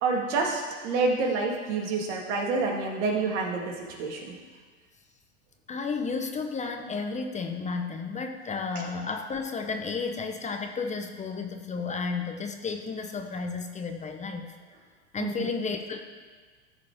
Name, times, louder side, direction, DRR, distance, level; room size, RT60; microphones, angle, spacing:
voice 1, 0.0-4.3 15.2-15.5, right 3 dB, 75° right, 0 dB, 2.3 m, -28 dB
voice 2, 5.7-14.5 15.1-16.0, left 4 dB, 20° left, 5 dB, 0.8 m, -32 dB
14.5 x 5.1 x 5.0 m, 1.5 s
hypercardioid pair, 105°, 36 cm